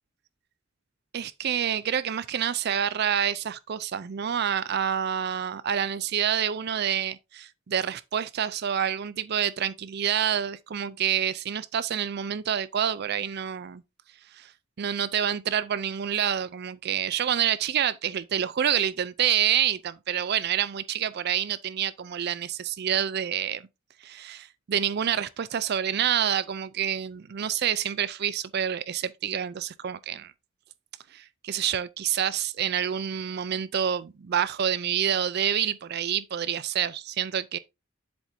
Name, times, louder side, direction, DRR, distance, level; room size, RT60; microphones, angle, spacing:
voice 1, 1.1-13.8 14.3-14.5 14.8-23.7 24.0-30.3 31.1-37.6, right 9 dB, 55° right, 0.4 m, -27 dB
7.7 x 7.2 x 2.7 m
head